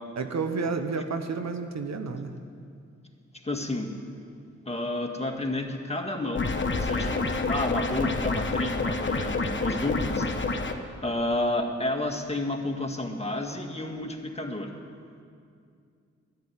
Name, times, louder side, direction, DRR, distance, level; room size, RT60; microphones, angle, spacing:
voice 1, 0.2-2.3, right 4 dB, 65° right, 7 dB, 1.0 m, -30 dB
voice 2, 3.4-3.9 4.7-10.5 11.0-14.7, left 1 dB, 20° left, 2 dB, 1.9 m, -31 dB
sound 1, 6.3-10.7, left 3 dB, 40° left, 1.2 m, -28 dB
11.0 x 9.3 x 9.6 m, 2.3 s
cardioid pair, 45°, 30 cm